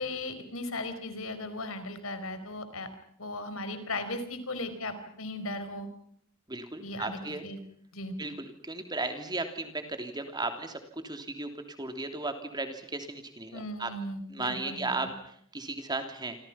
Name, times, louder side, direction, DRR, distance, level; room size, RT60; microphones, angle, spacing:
voice 1, 0.0-2.9 3.2-5.9 6.8-7.6 7.9-8.1 13.5-15.1, left 2 dB, 70° left, 10 dB, 4.7 m, -37 dB
voice 2, 6.5-7.4 8.2-11.5 11.8-13.9 14.3-16.4, right 2 dB, 20° right, 6 dB, 3.1 m, -35 dB
28.5 x 26.5 x 5.8 m, 0.64 s
head